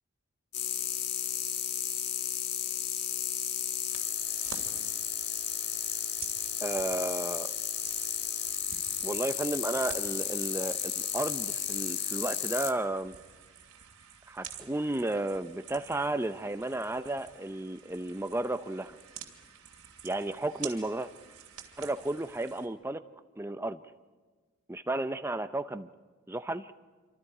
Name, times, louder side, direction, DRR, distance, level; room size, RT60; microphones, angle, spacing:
sound 1, 0.5-12.7, left 9 dB, 55° left, 1.4 m, -33 dB
sound 2, 3.9-22.7, right 8 dB, 80° right, 2.7 m, -50 dB
voice 1, 6.6-7.5 9.0-13.2 14.3-19.0 20.0-21.1 21.8-23.0 23.4-23.8 24.7-25.9 26.3-26.7, right 2 dB, 10° right, 10 dB, 0.6 m, -33 dB
27.0 x 25.5 x 4.9 m, 1.3 s
head